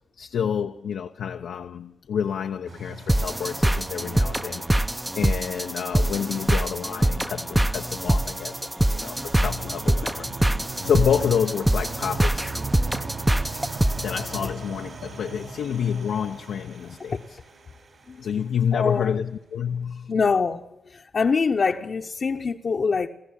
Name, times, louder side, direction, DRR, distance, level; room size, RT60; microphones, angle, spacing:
voice 1, 0.2-4.7 5.2-10.5 10.8-12.6 13.9-17.2 18.2-20.1, left 8 dB, 80° left, 0.7 m, -28 dB
sound 1, 2.7-18.8, right 5 dB, 60° right, 4.5 m, -40 dB
sound 2, 3.1-14.5, right 1 dB, 10° right, 0.7 m, -24 dB
voice 2, 10.0-10.6 12.8-13.0 18.1-18.2 18.7-19.2 20.1-23.1, left 5 dB, 55° left, 0.9 m, -25 dB
21.0 x 14.5 x 9.8 m
cardioid pair, 65°, 0 cm